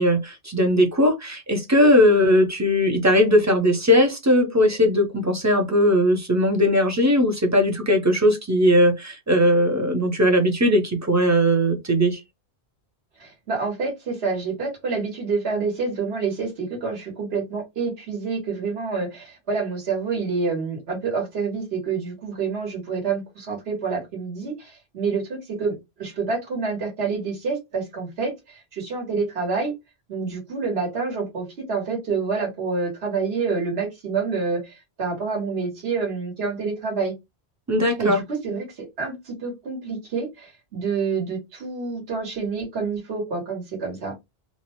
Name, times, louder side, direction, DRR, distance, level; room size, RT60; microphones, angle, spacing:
voice 1, 0.0-12.2 37.7-38.2, equal, 20° right, 0.4 m, -19 dB
voice 2, 13.2-29.7 30.1-37.1 38.0-44.1, right 4 dB, 70° right, 1.4 m, -28 dB
2.6 x 2.1 x 2.9 m
omnidirectional pair, 1.1 m